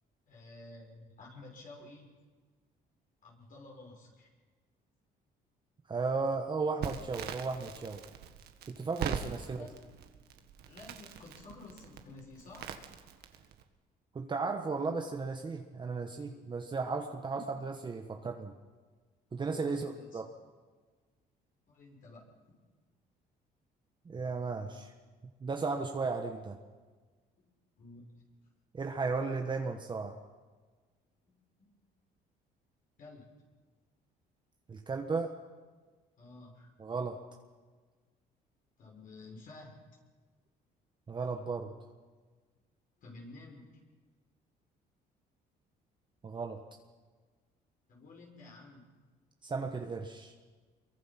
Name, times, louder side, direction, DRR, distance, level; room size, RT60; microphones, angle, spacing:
voice 1, 0.3-2.1 3.2-4.3 9.4-9.7 10.7-12.9 17.3-17.4 19.5-20.2 21.7-22.3 27.8-28.1 31.3-31.7 33.0-33.3 36.2-36.7 38.8-39.8 43.0-43.7 47.9-49.0, left 2 dB, 55° left, -1 dB, 6.0 m, -52 dB
voice 2, 5.9-8.0 8.7-9.6 14.1-18.5 19.3-20.3 24.0-24.9 25.4-26.6 28.7-30.2 34.7-35.4 36.8-37.2 41.1-41.7 46.2-46.6 49.4-50.3, right 4 dB, 25° right, 3 dB, 1.4 m, -35 dB
Crackle, 6.8-13.6, right 8 dB, 70° right, 1.8 m, -42 dB
25.5 x 23.0 x 6.0 m, 1.4 s
cardioid pair, 110°, 17 cm